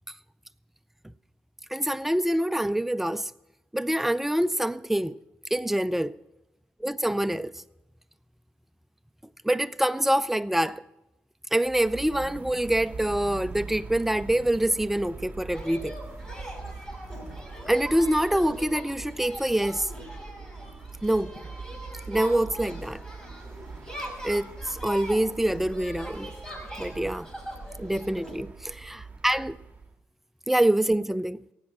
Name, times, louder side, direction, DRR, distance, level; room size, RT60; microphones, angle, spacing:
voice 1, 1.7-3.3 3.7-5.2 5.5-6.2 6.8-7.5 9.4-10.8 11.5-16.0 17.7-19.9 21.0-21.3 22.1-23.0 24.2-26.3 26.8-27.3 27.8-29.6 30.5-31.4, right 1 dB, 5° right, 0.5 m, -25 dB
sound 1, 11.6-29.9, right 4 dB, 25° right, 1.9 m, -43 dB
sound 2, 15.5-28.4, equal, 15° left, 5.5 m, -41 dB
15.5 x 9.7 x 5.8 m
supercardioid pair, 55°, 6 cm